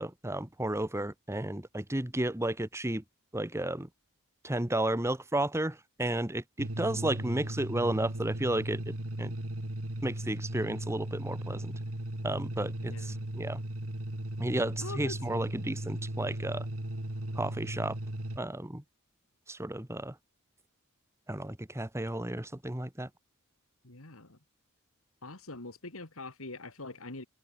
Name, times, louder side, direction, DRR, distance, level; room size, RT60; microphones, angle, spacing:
voice 1, 0.0-3.0 3.3-3.9 4.4-8.9 9.2-9.3 10.0-11.7 12.2-13.6 14.4-16.6 17.3-18.0 18.4-18.8 19.5-20.1 21.3-23.1, right 1 dB, 10° right, 1.4 m, -33 dB
sound 1, 6.6-18.4, right 1 dB, 75° right, 2.6 m, -37 dB
voice 2, 12.8-13.3 14.8-15.4 23.8-24.4 25.2-27.2, left 2 dB, 65° left, 3.0 m, -44 dB
head